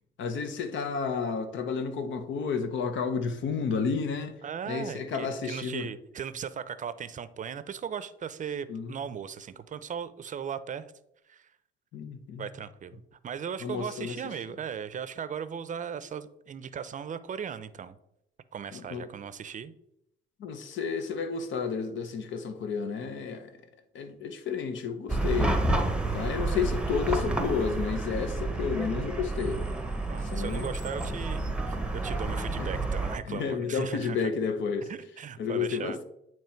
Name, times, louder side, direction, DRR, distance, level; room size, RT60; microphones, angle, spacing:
voice 1, 0.2-4.4 4.7-5.9 8.7-9.0 11.9-12.5 13.6-14.2 18.7-19.1 20.4-23.5 23.9-25.6 26.1-29.6 30.3-30.7 32.6-32.7 33.3-34.9 35.4-36.0, left 6 dB, 70° left, 0.9 m, -31 dB
voice 2, 4.4-10.9 11.3-11.5 12.4-18.0 18.5-19.7 30.1-34.3 34.9-36.0, right 7 dB, 40° right, 0.5 m, -38 dB
Chatter / Car passing by / Traffic noise roadway noise, 25.1-33.2, right 2 dB, 5° right, 0.8 m, -30 dB
9.0 x 3.0 x 4.4 m
cardioid pair, 90°, 20 cm